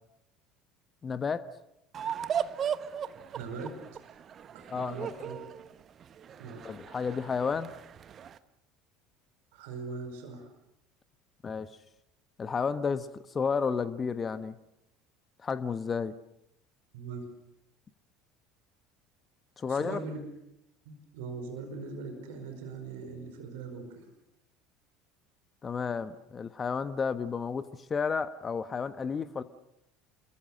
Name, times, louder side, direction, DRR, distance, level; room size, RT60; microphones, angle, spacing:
voice 1, 1.0-1.5 4.7-5.1 6.6-7.7 11.4-11.7 12.4-14.5 15.4-16.1 19.6-20.0 25.6-29.4, left 5 dB, 30° left, 13 dB, 1.1 m, -32 dB
sound 1, 1.9-8.4, right 8 dB, 40° right, 1.1 m, -37 dB
voice 2, 3.3-3.7 4.5-5.4 6.4-6.6 9.5-10.5 16.9-17.3 19.7-20.2 20.8-24.1, right 4 dB, 65° right, 6 dB, 4.8 m, -40 dB
28.0 x 22.5 x 6.5 m, 0.86 s
figure-of-eight pair, 65°, 0 cm